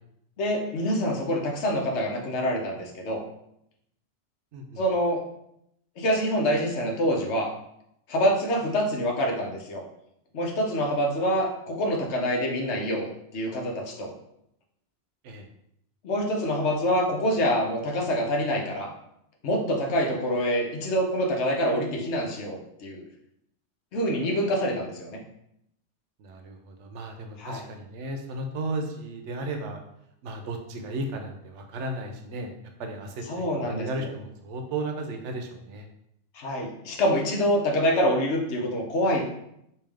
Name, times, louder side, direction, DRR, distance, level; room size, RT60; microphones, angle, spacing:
voice 1, 0.4-3.2 4.8-5.2 6.0-7.5 8.1-9.8 10.3-14.1 16.0-18.9 19.4-23.0 23.9-25.2 27.4-27.6 33.3-34.1 36.3-39.2, equal, 75° left, 0 dB, 1.0 m, -26 dB
voice 2, 26.2-29.8 30.2-32.5 32.8-35.9, right 2 dB, 90° right, 4 dB, 0.9 m, -34 dB
3.3 x 2.7 x 3.3 m, 0.77 s
omnidirectional pair, 1.2 m